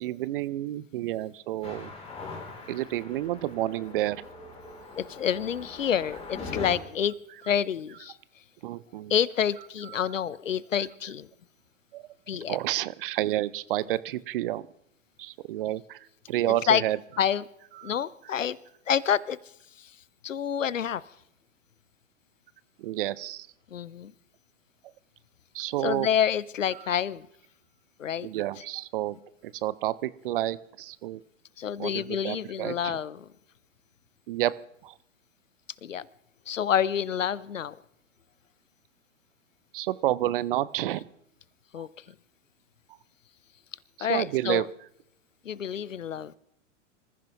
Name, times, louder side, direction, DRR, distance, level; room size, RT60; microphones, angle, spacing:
voice 1, 0.0-1.9 2.7-4.2 8.6-9.1 9.8-10.1 11.9-12.0 12.3-14.7 15.2-16.0 16.3-17.0 17.8-18.0 22.8-23.5 25.5-26.1 26.8-26.9 28.2-29.2 29.4-31.2 31.8-33.0 34.3-34.5 34.8-34.9 39.7-41.0 44.0-44.6, right 14 dB, 45° right, 18 dB, 0.7 m, -30 dB
sound 1, 1.6-6.8, left 3 dB, 15° left, 3.1 m, -41 dB
voice 2, 5.0-7.1 7.5-8.2 9.1-11.3 12.3-12.6 16.4-16.8 17.2-17.4 17.8-18.6 18.9-19.4 19.8-19.9 20.2-21.0 23.7-24.1 25.8-27.3 28.0-28.3 31.6-33.3 35.8-36.1 36.5-37.8 41.7-41.9 44.0-44.7 45.4-46.4, left 8 dB, 75° left, 21 dB, 0.7 m, -28 dB
26.0 x 14.5 x 3.0 m, 0.74 s
figure-of-eight pair, 105°, 39 cm